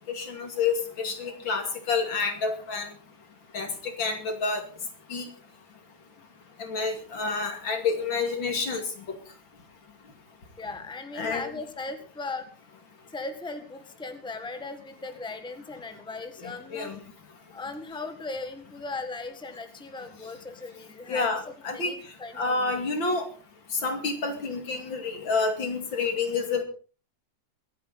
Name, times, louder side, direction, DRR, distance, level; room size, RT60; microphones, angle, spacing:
voice 1, 0.1-2.9 3.5-3.7 4.0-4.6 5.1-5.3 6.6-8.8 11.2-11.5 16.4-17.0 21.1-21.9 22.3-23.3 23.8-26.6, left 4 dB, 75° left, 5 dB, 3.2 m, -29 dB
voice 2, 10.6-12.5 13.1-16.9 17.5-22.5, left 3 dB, 5° left, 7 dB, 1.5 m, -38 dB
23.5 x 10.0 x 4.1 m, 0.37 s
omnidirectional pair, 2.1 m